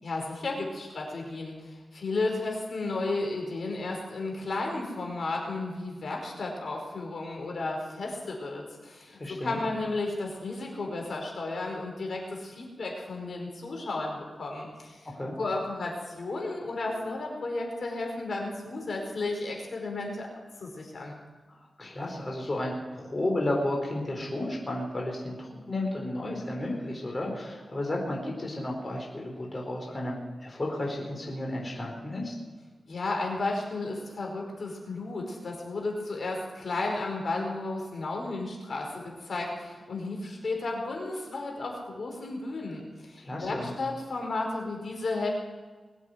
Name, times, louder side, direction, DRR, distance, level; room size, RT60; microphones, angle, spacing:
voice 1, 0.0-15.1 15.4-20.3 20.6-21.2 32.9-45.3, left 2 dB, 65° left, 0 dB, 4.9 m, -33 dB
voice 2, 9.1-9.6 15.1-15.3 21.5-32.3 43.2-43.7, left 1 dB, 35° left, -1 dB, 4.2 m, -33 dB
21.5 x 8.3 x 8.0 m, 1.4 s
cardioid pair, 75°, 0 cm